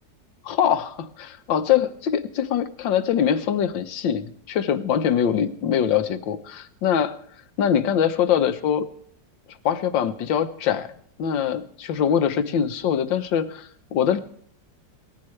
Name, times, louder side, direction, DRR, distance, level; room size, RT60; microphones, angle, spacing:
voice 1, 0.4-7.2 7.6-8.8 9.6-10.9 11.2-14.2, left 8 dB, 80° left, 10 dB, 1.7 m, -23 dB
20.0 x 14.0 x 3.2 m, 0.63 s
omnidirectional pair, 2.0 m